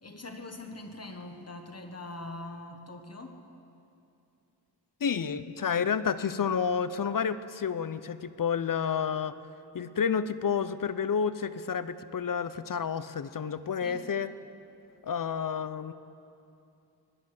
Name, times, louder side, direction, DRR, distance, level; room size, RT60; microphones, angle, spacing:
voice 1, 0.0-3.4 6.3-6.5 13.8-14.0, left 2 dB, 40° left, 5 dB, 1.4 m, -43 dB
voice 2, 5.0-9.3 9.7-14.3 15.0-15.9, left 7 dB, 55° left, 14 dB, 0.6 m, -30 dB
20.0 x 11.0 x 6.5 m, 2.7 s
wide cardioid pair, 90°, 40 cm